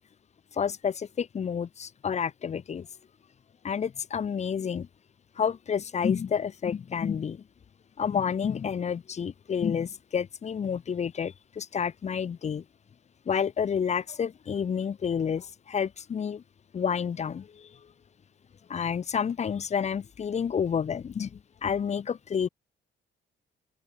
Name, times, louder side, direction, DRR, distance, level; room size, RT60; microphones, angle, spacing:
voice 1, 0.5-2.9 3.6-4.9 5.4-7.4 8.0-12.6 13.3-16.4 16.7-17.7 18.7-22.5, left 7 dB, 35° left, 0.6 m, -29 dB
open air
cardioid pair, 90°, 20 cm